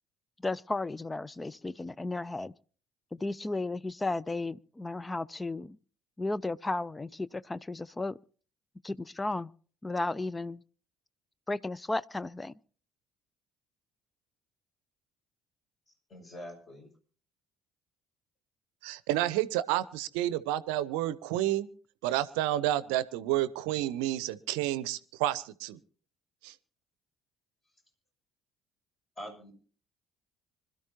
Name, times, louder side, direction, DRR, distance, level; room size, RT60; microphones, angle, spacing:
voice 1, 0.4-2.5 3.1-5.8 6.2-8.2 8.8-9.5 9.8-10.6 11.5-12.5, left 2 dB, 15° left, 0.5 m, -34 dB
voice 2, 16.1-16.9 29.2-29.5, equal, 35° left, 6.4 m, -44 dB
voice 3, 18.8-21.7 22.0-25.8 26.4-26.5, right 14 dB, 65° right, 0.7 m, -30 dB
25.5 x 12.5 x 2.8 m
figure-of-eight pair, 55°, 0 cm